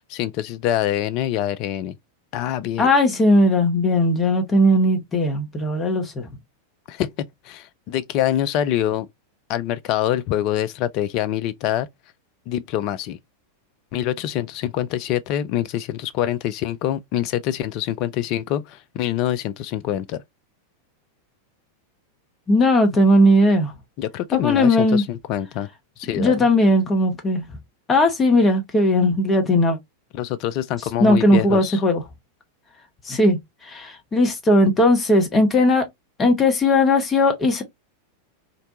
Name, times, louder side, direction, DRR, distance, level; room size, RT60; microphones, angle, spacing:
voice 1, 0.0-1.9 2.3-2.9 6.9-9.1 9.5-11.9 12.5-13.2 13.9-20.2 24.0-25.7 26.0-26.5 30.1-31.8, left 11 dB, 40° left, 0.3 m, -25 dB
voice 2, 2.8-6.2 22.5-23.7 24.3-25.0 26.1-27.5 27.9-29.8 31.0-32.0 33.1-35.8 36.2-37.6, left 1 dB, 20° left, 0.8 m, -18 dB
2.5 x 2.1 x 2.7 m
figure-of-eight pair, 90°, 0 cm